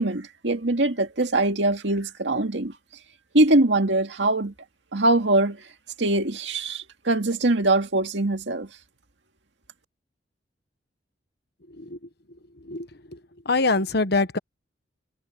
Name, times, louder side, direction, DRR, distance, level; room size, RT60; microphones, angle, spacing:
voice 1, 0.0-2.7 3.3-4.5 4.9-5.6 6.0-8.7, right 2 dB, 75° right, 2.3 m, -22 dB
voice 2, 12.7-13.2 13.4-14.4, left 3 dB, 60° left, 1.2 m, -24 dB
head